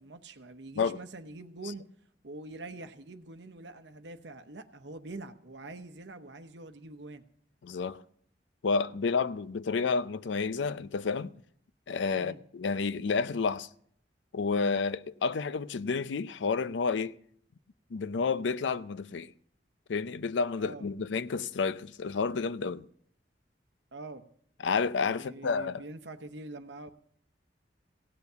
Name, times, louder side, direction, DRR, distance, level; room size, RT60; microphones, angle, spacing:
voice 1, 0.0-1.9 2.2-7.2 12.1-12.4 20.6-20.9 23.9-24.3 25.1-26.9, right 2 dB, 80° right, 0.9 m, -44 dB
voice 2, 7.6-8.0 8.6-11.3 11.9-13.7 14.3-17.2 17.9-19.3 19.9-22.9 24.6-25.8, left 5 dB, 90° left, 0.5 m, -30 dB
16.5 x 7.0 x 6.8 m
head